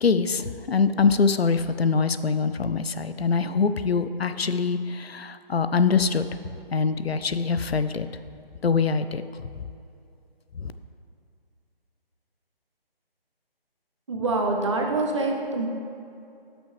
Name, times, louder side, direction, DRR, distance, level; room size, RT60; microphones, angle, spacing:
voice 1, 0.0-6.3 6.7-8.2 8.6-9.6 10.5-10.7, left 5 dB, 90° left, 11 dB, 0.6 m, -24 dB
voice 2, 14.1-15.7, right 2 dB, 30° right, 1 dB, 0.9 m, -25 dB
13.5 x 6.1 x 3.3 m, 2.6 s
figure-of-eight pair, 155°, 30 cm